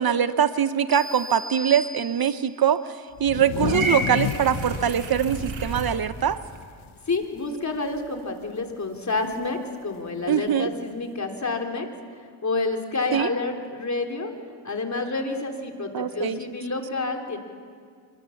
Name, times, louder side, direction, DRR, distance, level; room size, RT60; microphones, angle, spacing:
voice 1, 0.0-6.4 10.3-10.7 13.1-13.3 15.9-16.4, right 9 dB, 50° right, 12 dB, 0.9 m, -23 dB
sound 1, 0.9-2.6, equal, ahead, 2.4 m, -37 dB
sound 2, 3.2-6.9 7.2-7.4 7.7-8.2 9.3-9.4 10.5-10.6, left 11 dB, 75° left, 1.1 m, -32 dB
Purr / Meow, 3.7-5.9, right 1 dB, 75° right, 5.3 m, -30 dB
voice 2, 7.1-11.9 12.4-14.3 14.6-17.4, left 3 dB, 35° left, 3 dB, 3.5 m, -29 dB
25.5 x 22.0 x 7.2 m, 2.1 s
cardioid pair, 80°, 48 cm